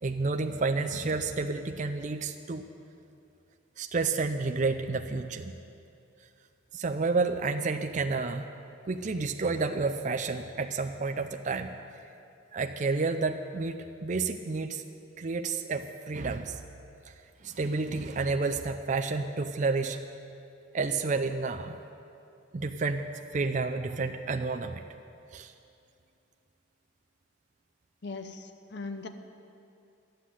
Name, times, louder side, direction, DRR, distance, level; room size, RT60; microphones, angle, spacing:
voice 1, 0.0-2.6 3.8-5.6 6.7-8.5 8.8-11.7 12.5-14.8 15.2-16.6 17.1-20.0 20.7-21.8 22.5-24.8 25.3-25.5, right 4 dB, 35° right, 6 dB, 0.4 m, -30 dB
voice 2, 28.0-29.1, left 3 dB, 55° left, 7 dB, 0.8 m, -39 dB
12.0 x 7.8 x 9.5 m, 2.6 s
head